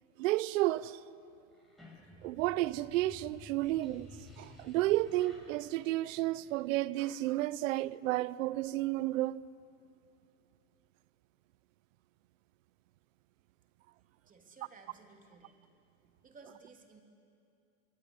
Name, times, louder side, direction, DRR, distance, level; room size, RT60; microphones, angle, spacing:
voice 1, 0.2-1.0 2.2-4.1 4.4-9.4, right 16 dB, 75° right, 0.9 m, -31 dB
sound 1, 1.5-6.8, left 1 dB, ahead, 7.3 m, -55 dB
voice 2, 14.2-15.7 16.0-17.0, right 4 dB, 20° right, 3.4 m, -57 dB
24.0 x 22.5 x 9.8 m
supercardioid pair, 120°, 39 cm